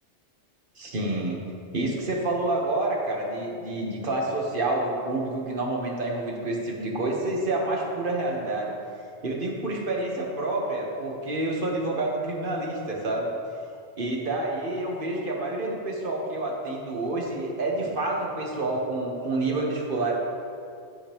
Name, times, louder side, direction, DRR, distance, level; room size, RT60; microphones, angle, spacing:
voice 1, 0.8-1.4 1.7-8.7 9.2-13.3 14.0-20.2, right 2 dB, 50° right, -1 dB, 1.3 m, -28 dB
14.0 x 5.1 x 3.0 m, 2.4 s
omnidirectional pair, 1.2 m